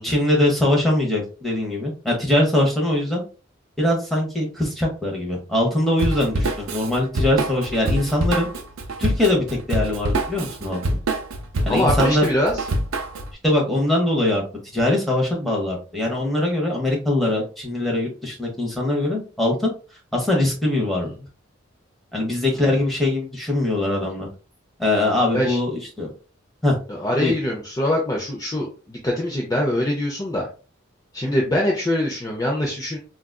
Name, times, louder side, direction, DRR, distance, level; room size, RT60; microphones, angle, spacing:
voice 1, 0.0-3.2 3.8-8.5 9.0-10.8 11.6-12.2 13.4-14.4 14.7-19.7 20.1-21.1 22.1-24.3 24.8-26.1 26.6-26.8 27.2-27.3, left 1 dB, ahead, -2 dB, 0.9 m, -22 dB
Drum kit / Drum, 6.0-13.3, right 1 dB, 85° right, 0.5 m, -25 dB
voice 2, 11.7-12.6 22.5-22.7 25.3-25.6 26.9-30.4 31.1-33.0, left 1 dB, 20° left, -1 dB, 0.5 m, -23 dB
3.9 x 2.4 x 2.2 m, 0.35 s
head